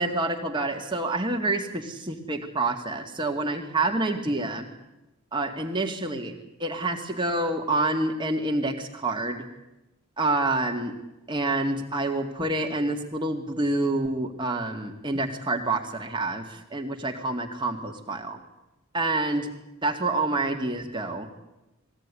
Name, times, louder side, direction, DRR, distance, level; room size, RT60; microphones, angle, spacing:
voice 1, 0.0-4.7 5.3-6.3 6.6-9.5 10.2-10.9 11.3-18.4 18.9-19.5 19.8-21.3, right 2 dB, 20° right, 2 dB, 2.1 m, -27 dB
22.0 x 16.5 x 9.9 m, 0.97 s
head